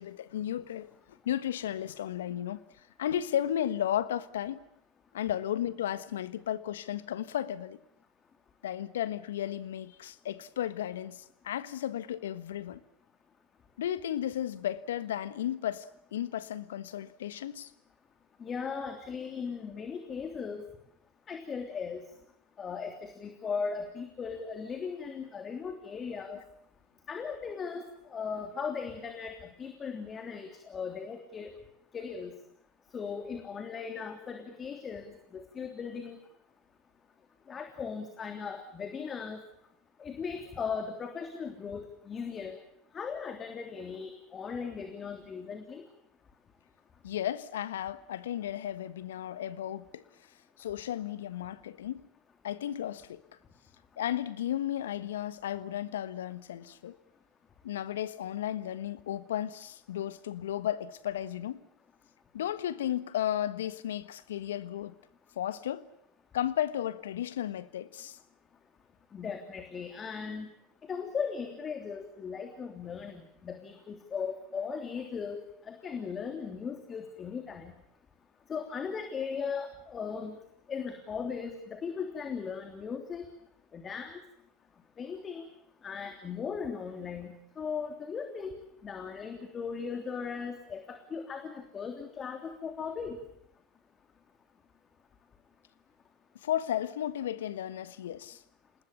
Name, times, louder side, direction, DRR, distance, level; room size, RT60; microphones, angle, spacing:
voice 1, 0.0-2.6 3.0-4.7 5.1-7.8 8.6-12.8 13.8-15.9 16.1-17.7 47.0-50.0 50.6-52.1 52.4-53.2 54.0-57.0 57.6-61.7 62.3-64.9 65.4-65.9 66.3-68.2 96.4-98.4, left 11 dB, 75° left, 1.3 m, -34 dB
voice 2, 18.4-20.6 21.3-22.0 22.6-26.4 27.1-31.5 31.9-32.3 32.9-35.0 35.3-36.2 37.5-39.4 40.0-42.6 42.9-45.8 69.1-70.5 70.9-75.4 75.6-77.7 78.5-80.4 80.7-83.2 83.7-84.2 85.0-85.5 85.8-88.6 88.8-93.2, left 6 dB, 30° left, 3.2 m, -38 dB
28.5 x 20.0 x 7.1 m
figure-of-eight pair, 80°, 0 cm